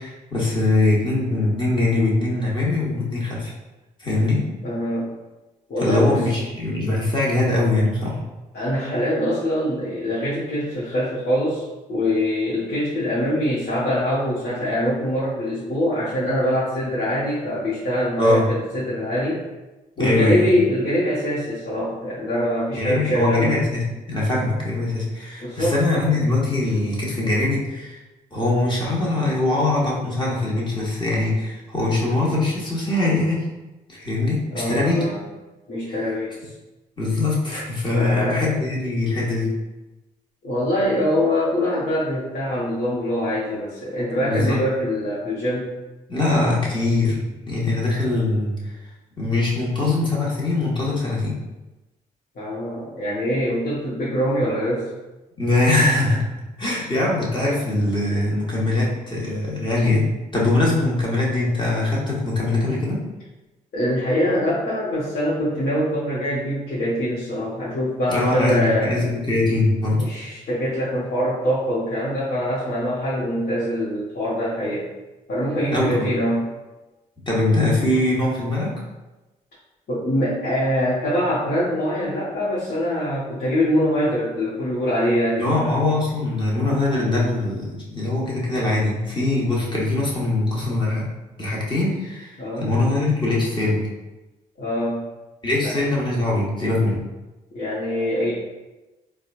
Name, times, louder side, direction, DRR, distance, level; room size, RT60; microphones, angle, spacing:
voice 1, 0.0-3.5 4.0-4.5 5.8-8.2 18.2-18.4 20.0-20.6 22.7-28.0 28.3-33.5 33.9-35.1 35.9-36.0 37.0-39.6 44.2-44.6 46.1-48.7 49.2-51.4 55.4-56.3 56.6-60.1 60.3-63.0 68.1-70.0 75.7-76.1 77.3-78.7 85.4-91.1 91.4-93.9 95.4-97.0, left 2 dB, 25° left, -5 dB, 1.4 m, -22 dB
voice 2, 4.6-5.1 5.7-6.2 8.5-19.4 20.0-23.5 25.4-25.8 34.5-35.2 35.7-36.3 37.9-38.5 40.4-45.7 52.3-54.9 63.7-68.9 70.0-74.9 75.3-76.5 79.9-85.8 92.4-92.7 94.6-95.0 95.6-95.7 97.5-98.3, equal, 55° left, -9 dB, 1.2 m, -23 dB
4.1 x 2.3 x 2.5 m, 1.1 s
hypercardioid pair, 45°, 19 cm